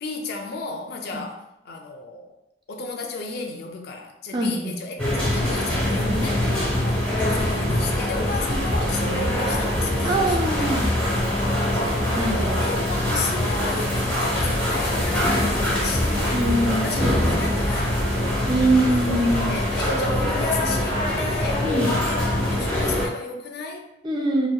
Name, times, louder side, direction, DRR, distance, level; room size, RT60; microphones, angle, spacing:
voice 1, 0.0-2.4 2.7-10.9 11.6-12.2 12.6-18.2 18.9-23.9, left 4 dB, 60° left, 2 dB, 0.4 m, -34 dB
voice 2, 4.3-4.7 8.5-8.6 10.0-10.9 12.1-12.6 16.3-16.9 18.5-19.5 21.6-21.9 24.0-24.5, right 1 dB, 25° right, 0 dB, 0.4 m, -23 dB
sound 1, 5.0-23.1, left 1 dB, 5° left, 0.8 m, -23 dB
2.7 x 2.1 x 2.2 m, 0.85 s
head